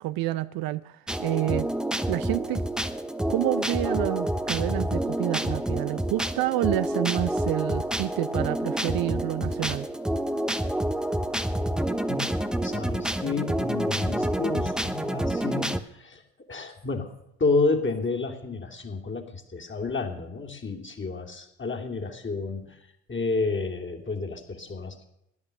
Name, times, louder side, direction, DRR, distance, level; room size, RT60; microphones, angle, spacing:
voice 1, 0.0-1.7 2.1-2.6 3.3-9.9, right 16 dB, 55° right, 14 dB, 0.6 m, -28 dB
sound 1, 1.1-15.8, right 1 dB, ahead, 0.9 m, -28 dB
voice 2, 12.0-16.2 16.5-22.8 23.1-25.0, left 3 dB, 25° left, 2 dB, 2.9 m, -30 dB
17.0 x 10.5 x 6.7 m, 0.85 s
hypercardioid pair, 55°, 42 cm